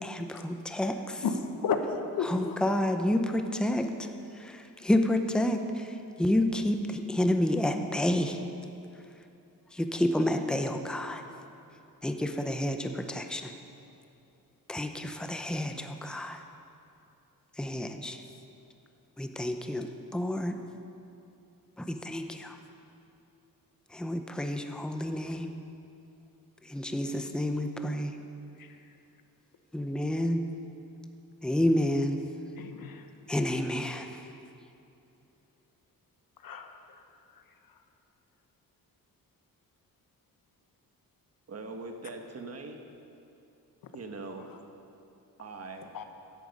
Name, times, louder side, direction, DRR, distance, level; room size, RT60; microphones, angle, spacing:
voice 1, 0.0-1.2 2.2-4.1 4.4-8.4 9.7-11.2 12.0-13.5 14.7-16.4 17.6-18.2 19.2-20.6 21.8-22.6 23.9-25.5 26.6-28.2 29.7-30.4 31.4-32.2 33.3-34.2, left 1 dB, ahead, 6 dB, 0.7 m, -29 dB
voice 2, 1.2-2.6 28.6-28.8 32.6-33.0 36.4-36.7 45.9-46.0, left 5 dB, 75° left, 6 dB, 1.2 m, -32 dB
voice 3, 41.5-42.8 43.9-44.5 45.4-46.0, right 3 dB, 45° right, 4 dB, 1.3 m, -41 dB
15.5 x 11.5 x 5.4 m, 2.7 s
wide cardioid pair, 140°, 35 cm